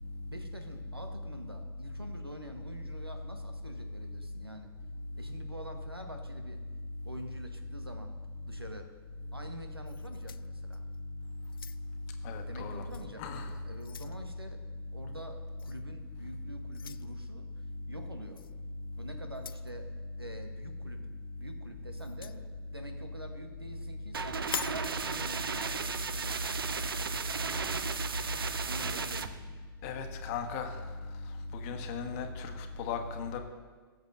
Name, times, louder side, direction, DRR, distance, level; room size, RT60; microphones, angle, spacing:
voice 1, 0.2-4.7 5.1-6.6 7.0-8.2 8.5-8.9 9.3-10.8 12.4-14.6 14.9-17.5 17.9-18.4 19.0-19.9 20.2-21.1 21.4-26.4 28.7-29.4, right 1 dB, 90° right, 6 dB, 1.1 m, -47 dB
sound 1, 9.9-11.0 11.4-12.1 12.9-13.1 13.5-14.2 15.6-15.8 16.7-17.1 18.3-18.5 19.3-19.7 22.0-22.4 24.4-24.9, left 8 dB, 70° left, 0.4 m, -43 dB
voice 2, 12.2-12.8 13.2-13.5 29.8-30.8 31.5-33.4, left 5 dB, 40° left, 5 dB, 1.3 m, -37 dB
sound 2, 24.1-29.3, right 5 dB, 70° right, 0.6 m, -34 dB
19.0 x 7.9 x 2.6 m, 1.4 s
figure-of-eight pair, 100°, 12 cm